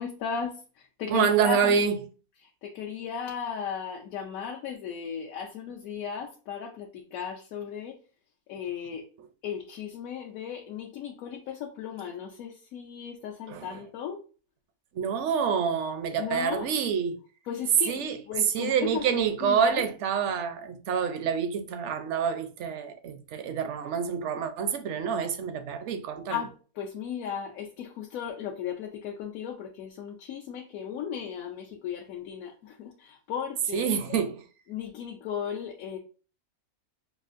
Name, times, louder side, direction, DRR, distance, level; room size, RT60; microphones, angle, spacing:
voice 1, 0.0-1.8 2.4-8.0 8.5-9.1 9.4-14.2 16.2-16.7 17.5-19.8 26.3-34.2 34.7-36.0, left 7 dB, 70° left, 1.0 m, -36 dB
voice 2, 1.1-2.0 13.5-13.8 14.9-17.2 17.9-18.2 18.5-26.4 33.7-34.4, right 7 dB, 65° right, 0.8 m, -27 dB
6.1 x 2.4 x 2.5 m
omnidirectional pair, 1.6 m